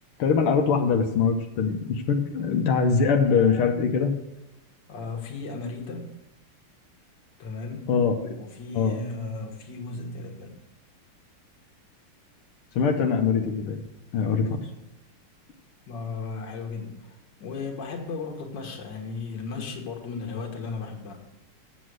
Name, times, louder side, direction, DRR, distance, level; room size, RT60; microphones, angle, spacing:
voice 1, 0.2-4.1 7.9-8.3 8.7-9.0 12.8-13.8 14.1-14.6, left 5 dB, 85° left, 3 dB, 1.8 m, -23 dB
voice 2, 4.9-6.1 7.4-7.9 8.4-10.5 15.9-21.2, left 4 dB, 55° left, 2 dB, 2.1 m, -35 dB
8.1 x 7.6 x 6.2 m, 0.98 s
omnidirectional pair, 2.4 m